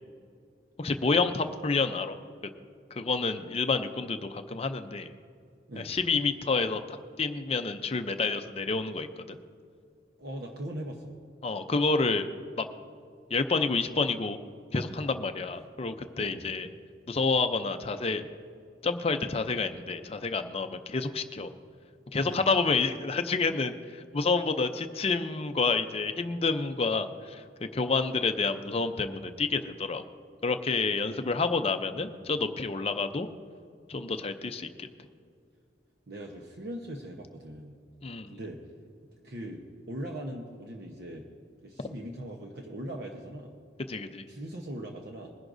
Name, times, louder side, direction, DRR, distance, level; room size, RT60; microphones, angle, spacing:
voice 1, 0.8-2.2 2.9-5.1 5.8-9.4 11.4-12.3 12.6-12.7 13.3-14.4 14.7-16.7 17.1-18.3 18.8-21.5 22.1-30.0 30.4-33.3 33.9-34.9 38.0-38.4 43.9-44.2, left 4 dB, 30° left, 8 dB, 0.5 m, -29 dB
voice 2, 10.2-11.2 16.2-16.4 22.2-22.4 30.9-31.4 36.1-37.7 38.3-38.6 39.2-41.2 41.6-43.5 44.3-45.3, right 1 dB, 55° right, 0 dB, 0.9 m, -40 dB
21.5 x 11.0 x 2.6 m, 2.3 s
head